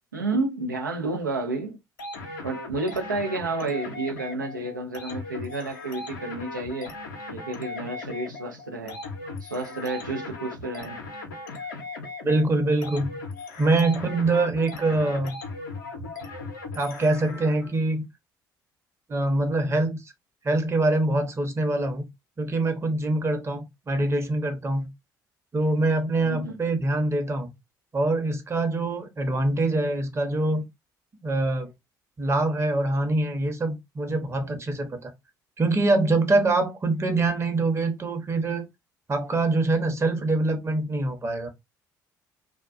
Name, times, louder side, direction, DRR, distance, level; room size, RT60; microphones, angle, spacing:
voice 1, 0.1-1.8 2.4-6.9 7.3-9.0 9.4-11.0 26.2-26.5, right 2 dB, 85° right, 0.5 m, -30 dB
sound 1, 2.0-17.7, left 3 dB, 75° left, 0.5 m, -38 dB
voice 2, 12.2-13.1 13.6-15.3 16.7-18.0 19.1-20.0 20.4-22.0 22.4-24.9 25.5-27.5 27.9-30.6 31.2-31.7 32.2-35.1 35.6-38.6 39.1-41.5, right 2 dB, 25° right, 0.8 m, -24 dB
2.3 x 2.1 x 2.4 m
figure-of-eight pair, 50°, 10 cm